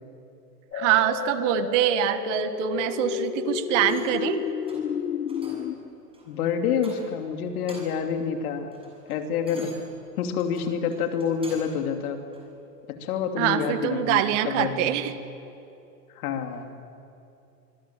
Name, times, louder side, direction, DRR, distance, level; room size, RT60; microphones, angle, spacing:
sound 1, 0.7-5.8, left 9 dB, 90° left, 1.5 m, -30 dB
voice 1, 0.7-4.4 13.4-15.1, right 13 dB, 45° right, 11 dB, 1.7 m, -24 dB
sound 2, 3.8-4.3 4.7-4.9 5.3-5.7 6.1-6.3 6.8-7.3 7.5-8.1 8.5-11.8 12.3-12.5, right 2 dB, 10° right, 7.5 m, -48 dB
voice 2, 6.3-8.7 9.1-9.7 10.2-12.2 12.9-15.1 16.1-16.7, left 7 dB, 60° left, 5 dB, 2.9 m, -28 dB
25.0 x 24.0 x 7.5 m, 2.8 s
hypercardioid pair, 135°, 49 cm